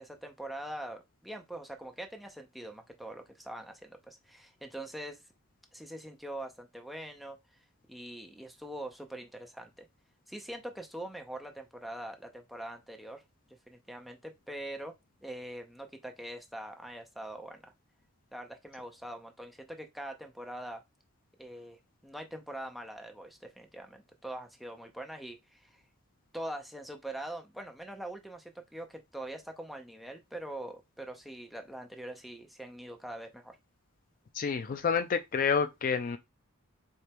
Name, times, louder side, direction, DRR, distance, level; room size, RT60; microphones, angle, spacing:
voice 1, 0.0-5.2 5.7-7.4 7.9-9.9 10.3-13.2 13.7-14.9 15.2-17.7 18.3-20.8 21.4-25.8 26.3-33.6, right 1 dB, ahead, 0.6 m, -43 dB
voice 2, 34.3-36.2, left 6 dB, 40° left, 0.3 m, -29 dB
4.4 x 3.3 x 3.4 m
head